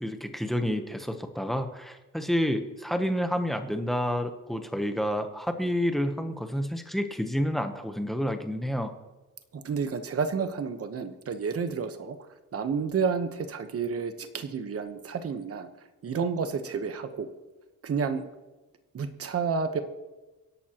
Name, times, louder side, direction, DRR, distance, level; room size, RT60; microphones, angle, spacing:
voice 1, 0.0-8.9, equal, ahead, 6 dB, 0.9 m, -29 dB
voice 2, 9.5-12.2 12.5-15.7 16.0-17.3 17.8-18.2 18.9-19.8, right 5 dB, 45° right, 8 dB, 1.1 m, -30 dB
24.5 x 11.0 x 3.0 m, 1.1 s
wide cardioid pair, 175°, 32 cm